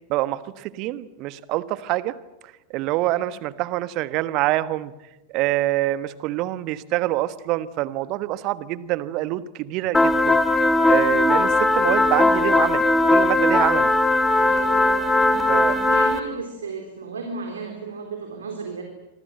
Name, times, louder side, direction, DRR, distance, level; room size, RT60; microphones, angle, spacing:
voice 1, 0.1-2.1 2.7-4.9 5.3-13.9 15.5-15.7, right 16 dB, 40° right, 16 dB, 1.3 m, -26 dB
sound 1, 9.9-16.2, left 2 dB, 10° left, 2.3 m, -19 dB
voice 2, 14.3-18.8, right 4 dB, 70° right, 4 dB, 3.8 m, -35 dB
26.5 x 25.0 x 7.9 m, 1.0 s
figure-of-eight pair, 90°, 0 cm